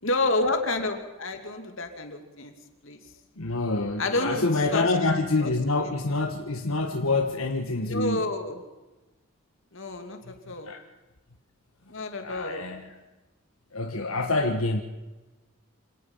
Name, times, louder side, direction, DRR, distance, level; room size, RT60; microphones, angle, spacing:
voice 1, 0.0-2.5 2.8-3.0 4.0-4.4 4.7-4.9 5.4-5.5 7.9-8.6 9.7-10.7 11.9-12.6, left 2 dB, 70° left, 5 dB, 2.7 m, -29 dB
voice 2, 3.4-8.2 10.2-10.8 12.2-13.0 13.7-14.8, left 3 dB, 90° left, 3 dB, 1.5 m, -27 dB
27.0 x 18.0 x 5.6 m, 1.1 s
head